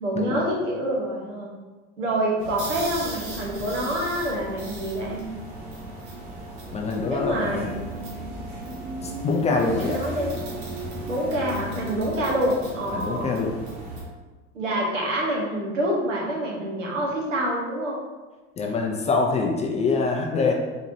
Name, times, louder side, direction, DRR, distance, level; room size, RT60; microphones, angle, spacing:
voice 1, 0.0-1.5 2.0-5.2 7.1-7.7 9.5-10.3 11.1-13.3 14.5-18.0, right 1 dB, 85° right, -3 dB, 1.1 m, -26 dB
sound 1, 2.4-14.0, right 2 dB, 55° right, 1.3 m, -36 dB
voice 2, 6.7-7.8 9.0-10.0 12.9-13.6 18.6-20.5, left 4 dB, 20° left, 1 dB, 0.4 m, -25 dB
4.1 x 2.8 x 2.7 m, 1.3 s
hypercardioid pair, 85°, 37 cm